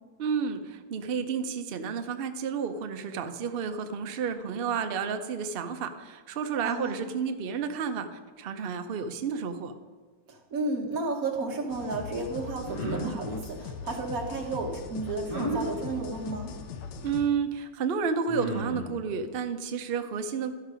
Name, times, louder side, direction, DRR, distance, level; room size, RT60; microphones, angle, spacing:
voice 1, 0.2-9.7 17.0-20.5, right 6 dB, 85° right, 7 dB, 0.5 m, -31 dB
voice 2, 6.6-7.1 10.3-16.5, right 3 dB, 55° right, 0 dB, 1.6 m, -33 dB
sound 1, 11.7-17.3, left 6 dB, 80° left, 1.4 m, -40 dB
sound 2, 12.6-13.1 15.3-15.6 17.1-17.2 18.3-18.9, right 1 dB, 15° left, 1.8 m, -32 dB
12.5 x 5.7 x 5.0 m, 1.4 s
omnidirectional pair, 1.9 m